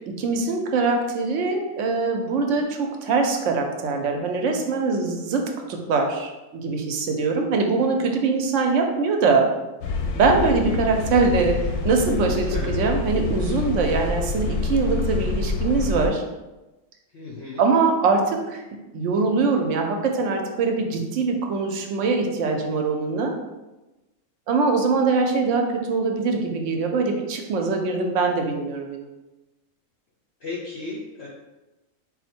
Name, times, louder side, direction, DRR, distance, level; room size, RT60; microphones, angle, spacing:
voice 1, 0.1-9.5 10.1-16.2 17.6-18.6 18.9-23.3 24.5-29.1, right 4 dB, 70° right, 3 dB, 0.8 m, -23 dB
sound 1, 9.8-16.1, left 4 dB, 85° left, 1.1 m, -27 dB
voice 2, 17.1-17.6 30.4-31.3, left 3 dB, 60° left, -4 dB, 0.7 m, -34 dB
4.2 x 2.1 x 4.2 m, 1.1 s
omnidirectional pair, 1.6 m